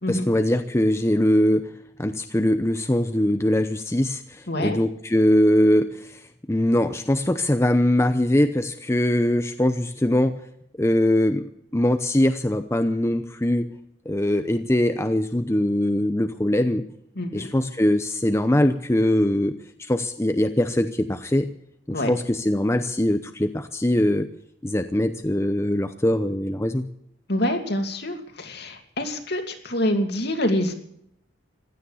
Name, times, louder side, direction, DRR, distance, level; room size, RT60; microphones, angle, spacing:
voice 1, 0.1-1.7 2.0-6.2 6.5-10.4 10.8-13.7 14.1-16.9 17.3-19.5 19.8-21.5 21.9-24.3 24.6-26.8, left 1 dB, 15° left, 8 dB, 0.7 m, -22 dB
voice 2, 4.5-4.8 17.2-17.5 21.9-22.1 27.3-30.7, left 1 dB, 60° left, 5 dB, 2.6 m, -26 dB
16.0 x 12.0 x 7.1 m, 0.71 s
head